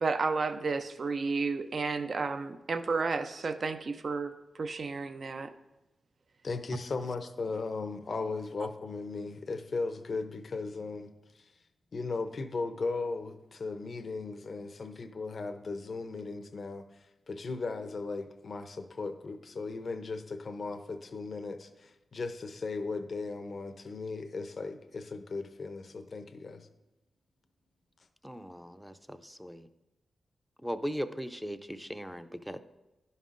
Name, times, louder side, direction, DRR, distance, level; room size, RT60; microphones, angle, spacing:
voice 1, 0.0-4.3 4.6-5.5, right 4 dB, 60° right, 9 dB, 0.5 m, -32 dB
voice 2, 6.4-11.1 11.9-16.8 17.3-26.7, left 3 dB, 60° left, 9 dB, 0.6 m, -37 dB
voice 3, 28.2-29.7 30.6-32.6, equal, 5° right, 10 dB, 0.5 m, -38 dB
11.0 x 5.4 x 2.5 m, 1.0 s
cardioid pair, 45°, 0 cm